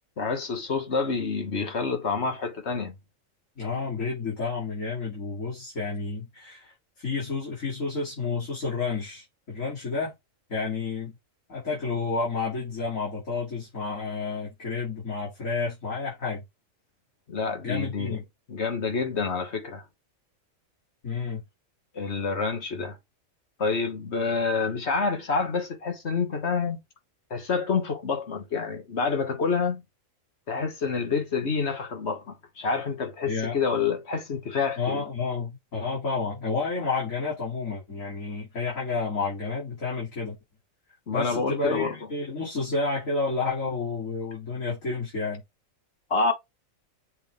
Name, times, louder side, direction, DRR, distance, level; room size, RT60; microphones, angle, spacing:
voice 1, 0.2-2.9 17.3-18.2 18.5-19.8 21.9-23.0 23.6-26.8 27.3-29.8 30.5-35.0 41.1-41.9 46.1-46.3, left 4 dB, 55° left, 1.6 m, -28 dB
voice 2, 3.6-10.1 10.5-11.1 11.5-16.4 17.6-18.2 21.0-21.4 33.3-33.6 34.8-40.4 41.1-45.4, left 4 dB, 80° left, 3.7 m, -30 dB
7.4 x 3.8 x 3.5 m
omnidirectional pair, 1.4 m